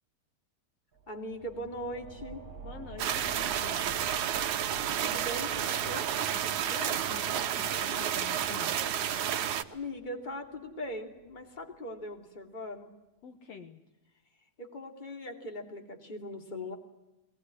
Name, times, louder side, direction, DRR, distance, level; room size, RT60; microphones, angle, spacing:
sound 1, 0.9-12.1, right 5 dB, 35° right, 2.3 m, -50 dB
voice 1, 1.1-2.4 5.0-6.0 9.7-12.9 14.6-16.7, left 1 dB, 15° left, 4 dB, 2.6 m, -40 dB
voice 2, 2.6-3.9 6.3-8.8 13.2-13.8, left 6 dB, 65° left, 7 dB, 2.2 m, -46 dB
sound 2, 3.0-9.6, right 10 dB, 85° right, 2.5 m, -31 dB
22.5 x 19.5 x 9.9 m, 0.99 s
omnidirectional pair, 3.3 m